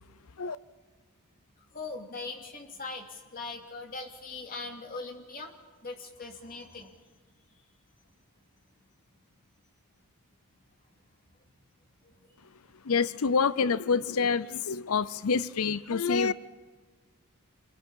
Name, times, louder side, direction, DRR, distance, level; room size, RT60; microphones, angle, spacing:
voice 1, 1.7-7.1 12.0-12.4, left 3 dB, 40° left, 2.7 m, -41 dB
voice 2, 12.8-16.3, left 5 dB, 70° left, 0.6 m, -27 dB
27.0 x 22.0 x 5.5 m
head